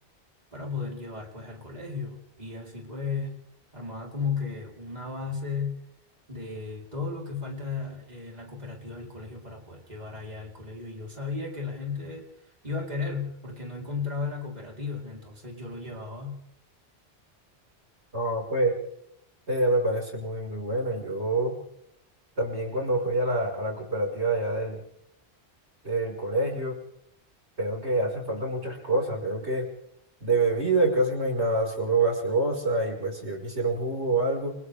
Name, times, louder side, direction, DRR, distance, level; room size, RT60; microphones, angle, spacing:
voice 1, 0.5-3.4 3.7-5.8 6.3-12.3 12.6-16.4, left 4 dB, 40° right, -2 dB, 4.2 m, -35 dB
voice 2, 18.1-18.8 19.5-21.5 22.4-24.8 25.8-26.8 27.6-29.7 30.2-34.6, right 2 dB, 80° right, 0 dB, 5.9 m, -26 dB
29.5 x 25.5 x 3.6 m, 0.74 s
omnidirectional pair, 1.1 m